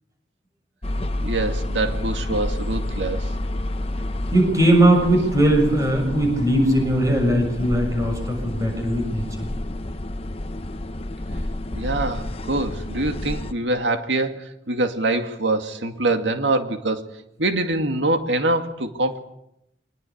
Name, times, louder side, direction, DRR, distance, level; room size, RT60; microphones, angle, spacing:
sound 1, 0.8-13.5, left 1 dB, 30° left, 1.0 m, -29 dB
voice 1, 1.2-3.3 11.7-17.0 17.4-19.2, right 2 dB, 85° right, 2.2 m, -24 dB
voice 2, 4.3-9.5, right 1 dB, 20° right, 6.8 m, -19 dB
25.0 x 20.0 x 8.6 m
head